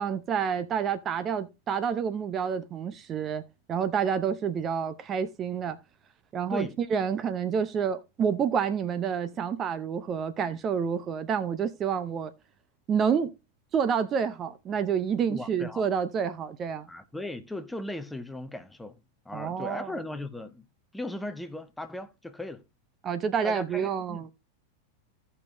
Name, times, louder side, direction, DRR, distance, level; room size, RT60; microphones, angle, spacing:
voice 1, 0.0-3.4 3.7-5.8 6.3-12.3 12.9-13.3 13.7-16.9 19.3-19.9 23.0-24.3, right 7 dB, 25° right, 0.6 m, -28 dB
voice 2, 15.3-15.8 16.9-19.0 19.2-20.7 20.9-22.6 23.4-24.2, left 1 dB, 5° left, 0.8 m, -37 dB
16.0 x 5.5 x 2.9 m
figure-of-eight pair, 90°, 0 cm